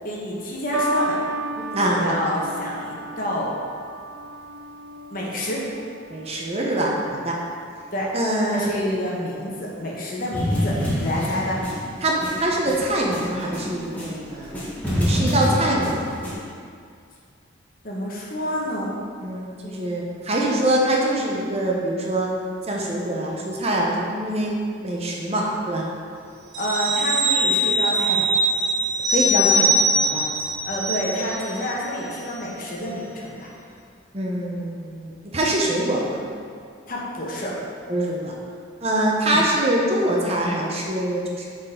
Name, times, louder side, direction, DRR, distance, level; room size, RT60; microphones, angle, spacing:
voice 1, 0.0-1.2 1.8-3.5 5.1-5.6 7.9-8.1 8.5-11.6 17.8-18.9 26.6-28.4 30.6-33.4 36.9-37.6 39.3-39.4, equal, 45° left, -4 dB, 1.2 m, -28 dB
sound 1, 0.7-7.2 8.1-8.5, right 1 dB, 80° right, 0.7 m, -33 dB
voice 2, 6.1-7.3 8.1-8.7 12.0-14.6 14.9-16.0 19.2-22.3 22.7-25.8 29.1-30.2 34.1-36.2 37.9-38.3 38.8-41.4, right 1 dB, 30° right, -2 dB, 0.8 m, -24 dB
sound 2, 10.3-14.1 14.4-16.3, equal, 10° left, 1.4 m, -26 dB
sound 3, 26.5-31.6 32.0-32.1, right 1 dB, 60° right, 1.4 m, -22 dB
8.6 x 4.1 x 3.8 m, 2.2 s
head